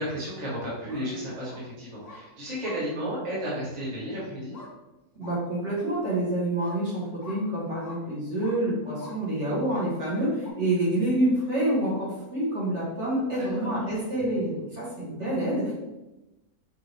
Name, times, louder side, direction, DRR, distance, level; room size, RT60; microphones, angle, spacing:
voice 1, 0.0-4.6 13.4-13.7, equal, 25° right, -7 dB, 1.3 m, -33 dB
sound 1, 0.7-1.0 1.4-1.6 2.0-2.2 2.6-2.8 3.4-3.5 4.5-4.7 5.2-5.4 5.8-5.9 6.6-6.8 7.2-7.4 7.8-8.0 8.4-8.6 9.0-9.2 9.7-9.9 10.4-10.5, left 3 dB, 30° left, 0.8 m, -45 dB
voice 2, 5.2-15.7, right 1 dB, 50° right, -7 dB, 1.6 m, -27 dB
5.3 x 3.0 x 3.2 m, 1.0 s
omnidirectional pair, 1.7 m